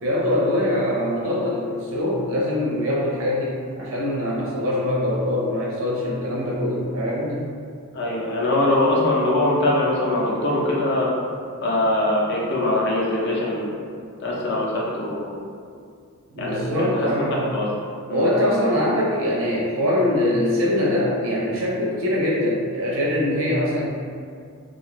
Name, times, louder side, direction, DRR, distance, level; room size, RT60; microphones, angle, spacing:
voice 1, 0.0-7.5 16.3-17.4 18.1-23.9, left 1 dB, 65° right, -4 dB, 0.6 m, -23 dB
voice 2, 7.9-11.1 11.6-13.8 14.2-15.3 16.4-17.7 18.1-18.3, left 1 dB, 50° left, -4 dB, 0.5 m, -22 dB
2.3 x 2.3 x 3.0 m, 2.2 s
head